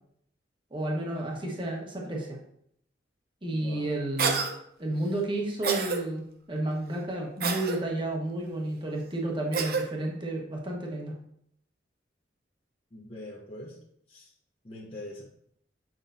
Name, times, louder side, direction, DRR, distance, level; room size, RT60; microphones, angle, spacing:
voice 1, 0.7-2.4 3.4-4.4 4.8-11.1, right 1 dB, 25° right, -1 dB, 1.3 m, -31 dB
voice 2, 3.5-4.0 12.9-13.8 14.1-14.3 14.6-15.2, left 1 dB, 30° left, -4 dB, 0.9 m, -43 dB
Cough, 4.2-4.5 5.6-6.0 7.4-7.8 9.5-9.8, right 5 dB, 55° right, 0.7 m, -28 dB
7.4 x 5.5 x 2.6 m, 0.71 s
head